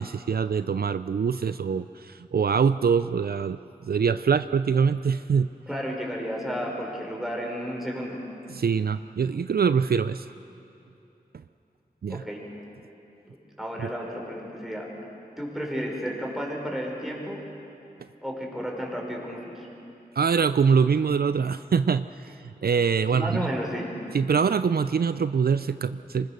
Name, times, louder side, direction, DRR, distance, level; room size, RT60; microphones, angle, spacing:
voice 1, 0.0-5.5 8.5-10.3 12.0-12.2 20.2-22.3 22.6-23.5 24.1-26.3, right 6 dB, 65° right, 13 dB, 0.4 m, -24 dB
voice 2, 5.7-8.2 12.1-12.4 13.3-14.9 15.4-17.4 18.2-19.7 23.1-23.9, equal, ahead, -2 dB, 5.6 m, -32 dB
24.5 x 20.5 x 6.7 m, 2.8 s
wide cardioid pair, 50°, 17 cm